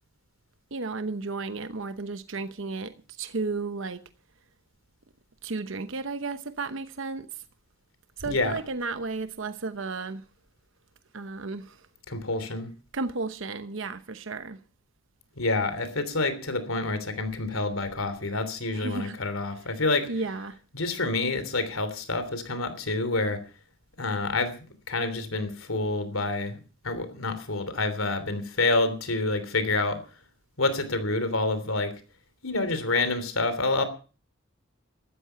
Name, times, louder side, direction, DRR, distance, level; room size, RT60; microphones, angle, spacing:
voice 1, 0.7-4.0 5.4-7.4 8.2-10.2 11.1-11.9 12.9-14.6 18.7-19.2 20.1-20.6, right 3 dB, 65° right, 0.9 m, -33 dB
voice 2, 12.1-12.7 15.4-20.1 20.7-23.4 24.0-30.0 30.6-31.9 32.4-33.8, left 2 dB, 85° left, 3.1 m, -28 dB
14.0 x 13.5 x 5.8 m
head